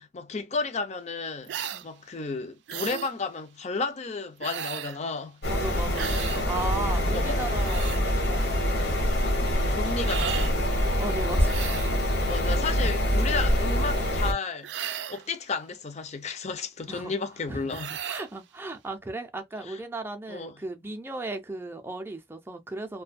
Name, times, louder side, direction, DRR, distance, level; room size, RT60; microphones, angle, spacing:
voice 1, 0.0-1.6 1.8-5.4 7.0-7.4 8.8-9.0 9.7-10.7 12.2-14.7 15.1-17.9 19.7-19.8 20.3-20.6, left 4 dB, 40° left, 0.5 m, -33 dB
sound 1, 1.5-1.8 2.7-3.1 4.4-5.0 5.9-6.4 7.4-8.0 10.0-10.5 11.4-12.0 14.6-15.3 17.7-18.3, right 9 dB, 75° right, 0.4 m, -35 dB
sound 2, 5.4-14.3, equal, 65° left, 1.1 m, -25 dB
voice 2, 5.5-8.0 8.2-9.2 11.0-12.6 16.9-17.1 17.5-23.0, right 2 dB, 15° right, 0.5 m, -36 dB
2.7 x 2.1 x 2.5 m
head